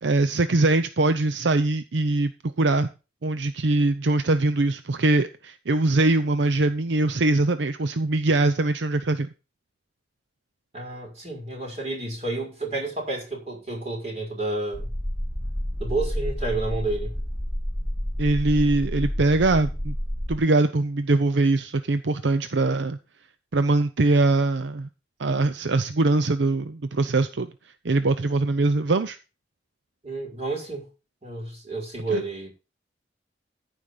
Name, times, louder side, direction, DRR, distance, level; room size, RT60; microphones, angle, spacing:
voice 1, 0.0-2.3 2.6-2.9 3.2-9.3 18.2-20.0 20.3-23.0 23.5-24.9 25.2-27.5 27.8-29.2 32.1-32.2, right 2 dB, 75° right, 0.6 m, -22 dB
voice 2, 10.7-14.9 15.8-17.1 30.0-30.9 31.2-32.5, right 2 dB, 35° right, 5.6 m, -30 dB
sound 1, 14.7-20.4, equal, ahead, 1.9 m, -29 dB
14.5 x 5.2 x 5.6 m
head